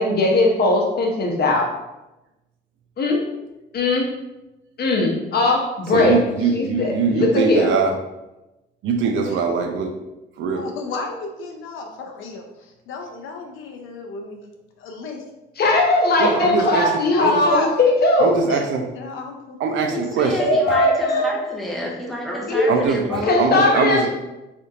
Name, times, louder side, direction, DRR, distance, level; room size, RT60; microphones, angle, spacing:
voice 1, 0.0-1.7 3.0-3.2 3.7-4.0 4.8-6.2 6.5-7.7 15.6-18.4 20.4-21.3 22.5-22.8 23.2-24.1, left 2 dB, 50° left, 0 dB, 0.8 m, -19 dB
voice 2, 5.9-8.0 8.8-9.9 10.4-10.6 16.2-16.9 17.2-17.4 18.2-18.8 19.6-20.4 20.7-20.8 22.7-24.1, right 5 dB, 75° right, 4 dB, 0.5 m, -22 dB
voice 3, 10.4-14.5 14.8-15.2 17.2-17.7 18.5-18.6 18.9-19.6 19.8-19.9 22.9-23.2, left 4 dB, 85° left, 2 dB, 0.5 m, -32 dB
voice 4, 19.6-23.4, left 1 dB, ahead, -2 dB, 0.7 m, -29 dB
3.4 x 2.7 x 2.4 m, 1.0 s
cardioid pair, 90°, 20 cm